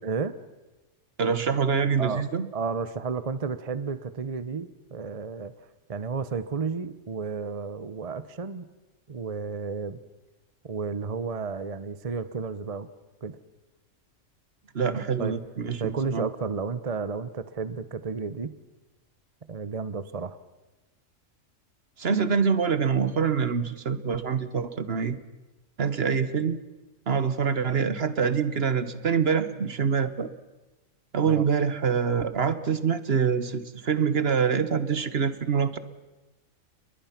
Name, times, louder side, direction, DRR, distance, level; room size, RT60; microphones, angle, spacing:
voice 1, 0.0-0.3 2.0-2.2 2.5-5.5 5.9-8.7 9.1-10.0 10.6-12.9 13.2-13.4 15.2-15.4 15.8-18.5 19.5-20.4 31.3-31.4, right 5 dB, 30° right, 13 dB, 0.8 m, -32 dB
voice 2, 1.2-2.5 14.7-16.3 22.0-25.2 25.8-26.6 27.1-30.3 31.1-35.8, right 6 dB, 55° right, 13 dB, 1.3 m, -25 dB
30.0 x 22.0 x 5.9 m, 1.1 s
omnidirectional pair, 1.3 m